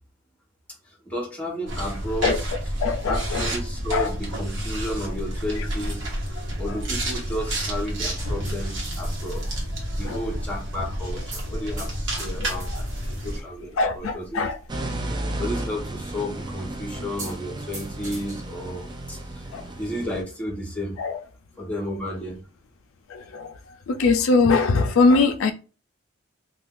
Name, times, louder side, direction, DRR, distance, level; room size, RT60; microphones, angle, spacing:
voice 1, 1.0-2.4 3.1-6.0 6.3-9.5 9.9-12.9 13.2-14.4 15.4-19.4 19.8-20.9 21.6-22.4, equal, 5° left, 1.0 m, -32 dB
sound 1, 1.7-13.4, right 1 dB, 65° right, 1.0 m, -30 dB
voice 2, 2.8-3.5 3.9-4.1 6.7-6.8 10.0-10.2 12.4-12.6 13.8-14.6 19.5-19.7 21.0-21.2 23.1-23.5 23.9-25.5, left 3 dB, 80° left, 0.4 m, -22 dB
sound 2, 7.7-20.1, right 1 dB, 40° right, 1.2 m, -44 dB
sound 3, 14.7-20.2, right 1 dB, 20° right, 0.4 m, -33 dB
2.5 x 2.3 x 3.6 m
head